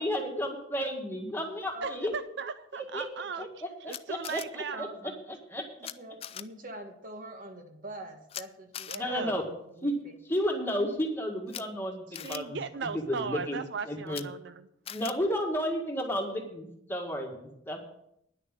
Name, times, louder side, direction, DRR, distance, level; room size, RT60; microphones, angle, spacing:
voice 1, 0.0-2.1 2.9-3.0 3.4-5.6 8.9-9.5 9.8-10.0 10.3-14.3 14.9-17.8, equal, 10° left, 1 dB, 1.8 m, -33 dB
voice 2, 1.8-4.8 8.9-9.4 12.2-14.5, right 5 dB, 60° right, 12 dB, 0.4 m, -37 dB
Camera, 3.9-4.4 5.8-5.9 6.2-6.4 8.3-8.4 8.7-9.0 11.5-11.6 12.1-12.4 14.1-14.2 14.9-15.1, left 10 dB, 30° left, 0.3 m, -40 dB
voice 3, 4.7-5.2 5.8-10.2, right 1 dB, 45° right, 5 dB, 1.5 m, -44 dB
10.0 x 6.7 x 8.8 m, 0.76 s
head